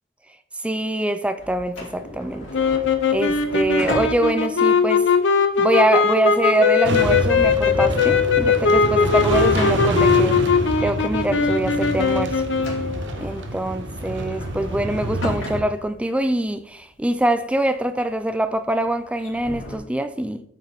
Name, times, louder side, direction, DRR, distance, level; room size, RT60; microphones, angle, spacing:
voice 1, 0.6-2.5 3.1-5.0 5.6-10.4 10.8-12.4 13.2-20.4, right 1 dB, 5° right, 0.4 m, -24 dB
sound 1, 1.4-10.4 10.8-10.9 11.5-11.8 12.1-12.2 12.5-19.8, left 1 dB, 90° left, 2.7 m, -36 dB
sound 2, 2.5-13.0, left 5 dB, 65° left, 0.8 m, -20 dB
sound 3, 6.8-15.6, right 1 dB, 65° right, 1.0 m, -27 dB
8.8 x 6.3 x 3.6 m
head